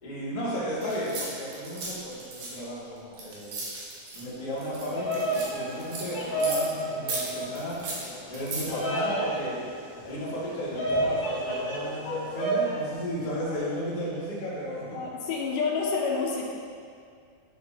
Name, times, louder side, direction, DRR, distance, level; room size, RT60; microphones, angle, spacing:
voice 1, 0.0-3.6 4.1-7.8 8.3-9.6 10.0-15.0, equal, 20° left, -9 dB, 1.3 m, -34 dB
sound 1, 0.8-4.2 4.6-6.8 7.1-8.6, right 2 dB, 70° right, 2.8 m, -36 dB
Bird vocalization bird call bird song, 4.7-12.8, right 1 dB, 50° left, 2.1 m, -31 dB
voice 2, 14.9-16.4, left 5 dB, 80° left, -1 dB, 2.3 m, -28 dB
9.3 x 6.8 x 2.8 m, 2.2 s
omnidirectional pair, 3.8 m